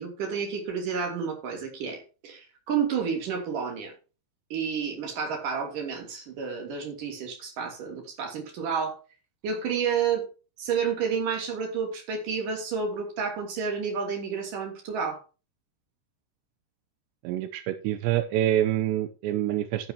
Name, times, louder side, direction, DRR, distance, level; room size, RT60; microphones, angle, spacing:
voice 1, 0.0-3.9 4.5-9.0 9.4-10.3 10.6-15.2, right 6 dB, 45° right, 2 dB, 4.0 m, -30 dB
voice 2, 17.2-19.9, right 12 dB, 80° right, 10 dB, 2.5 m, -26 dB
12.0 x 10.0 x 2.9 m, 0.33 s
omnidirectional pair, 5.8 m